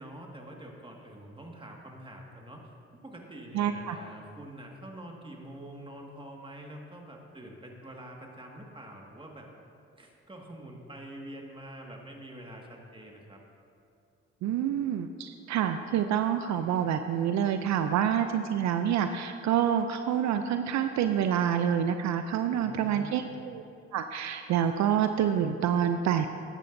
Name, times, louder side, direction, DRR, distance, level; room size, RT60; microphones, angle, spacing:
voice 1, 0.0-2.7 3.0-9.5 10.0-13.4 22.5-23.4, right 1 dB, 15° right, 0 dB, 1.8 m, -46 dB
voice 2, 3.5-4.0 14.4-23.6 23.9-26.3, right 9 dB, 70° right, 8 dB, 0.5 m, -27 dB
13.5 x 10.5 x 2.6 m, 2.5 s
supercardioid pair, 65°, 29 cm